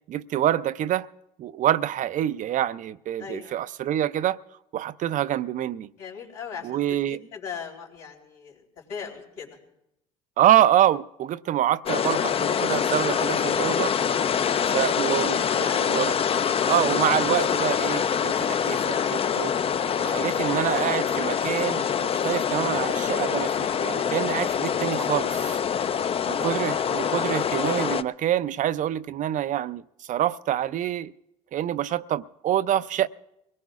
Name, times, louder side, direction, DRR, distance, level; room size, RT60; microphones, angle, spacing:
voice 1, 0.1-1.1 1.4-4.4 4.7-5.9 6.6-7.2 10.4-13.9 14.7-16.1 16.7-19.5 20.0-25.6 26.3-31.1 31.5-33.1, right 12 dB, 50° right, 0.4 m, -26 dB
voice 2, 3.2-3.5 6.0-9.5 15.4-16.0 25.7-26.1, left 7 dB, 80° left, 3.5 m, -39 dB
sound 1, 11.9-28.0, left 7 dB, 35° left, 0.4 m, -25 dB
23.5 x 18.0 x 2.4 m
supercardioid pair, 70°, 17 cm